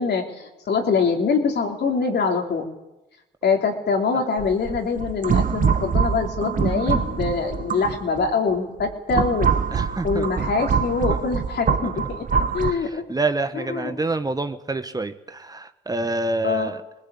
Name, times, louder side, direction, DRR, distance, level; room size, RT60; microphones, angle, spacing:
voice 1, 0.0-2.7 3.4-9.5 9.8-12.2 12.5-13.0 13.5-13.9 16.4-16.7, left 5 dB, 55° left, 3 dB, 3.6 m, -24 dB
sound 1, 4.4-8.3 8.8-12.7, right 6 dB, 45° right, 1.3 m, -24 dB
voice 2, 9.7-10.3 12.7-16.8, right 2 dB, 20° right, 9 dB, 1.1 m, -27 dB
20.5 x 19.5 x 8.6 m, 0.99 s
cardioid pair, 90°, 20 cm